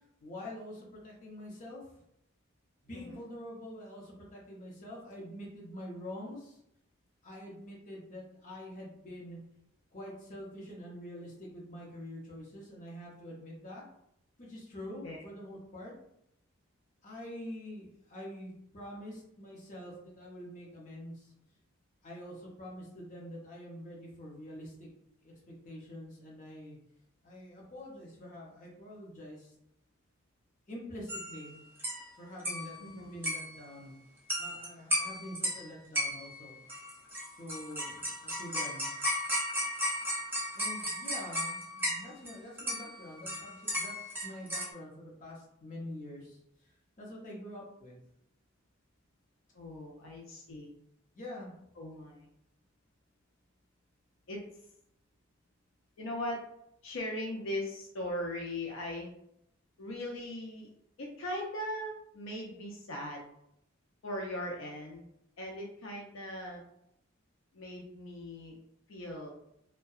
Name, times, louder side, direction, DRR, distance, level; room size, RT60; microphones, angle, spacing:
voice 1, 0.2-1.8 2.8-6.6 7.2-9.4 9.9-13.8 14.4-15.9 17.0-21.3 22.0-24.9 25.2-26.8 27.2-29.5 30.7-31.6 32.2-33.9 34.4-36.5 37.4-38.9 40.5-46.4 46.6-48.0 51.2-51.5, left 1 dB, 40° left, -4 dB, 0.7 m, -46 dB
sound 1, 31.1-31.5 31.8-32.0 32.4-32.8 33.2-33.7 34.3-34.7 34.9-35.6 35.9-36.4 36.7-42.3 42.6-44.7, equal, 10° right, 0.4 m, -35 dB
voice 2, 32.8-33.1 49.5-50.7 51.8-52.3 54.3-54.4 56.0-56.4 56.8-59.1 59.8-60.7 61.0-63.2 64.0-65.1 65.4-66.6 67.5-68.6 68.9-69.3, left 1 dB, 75° left, -1 dB, 0.4 m, -39 dB
2.7 x 2.1 x 2.3 m, 0.78 s
head